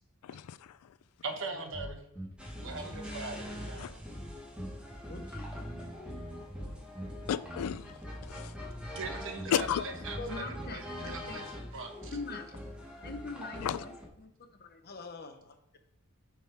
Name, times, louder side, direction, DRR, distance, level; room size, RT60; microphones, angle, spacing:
voice 1, 0.2-1.0 3.8-3.9 7.3-7.9 8.2-8.6 9.5-9.8 13.6-13.8, left 9 dB, 90° left, 0.3 m, -33 dB
voice 2, 1.2-2.0 2.6-4.0 8.9-11.5 11.7-12.2, right 3 dB, 60° right, 1.0 m, -41 dB
sound 1, 1.7-11.3, right 1 dB, 10° left, 2.8 m, -45 dB
sound 2, 2.4-14.1, left 1 dB, 5° right, 1.0 m, -44 dB
voice 3, 5.1-5.5 7.2-7.3 9.5-9.7 10.2-11.5 12.1-12.5 13.0-15.8, left 3 dB, 45° left, 0.8 m, -43 dB
9.1 x 3.7 x 4.3 m
head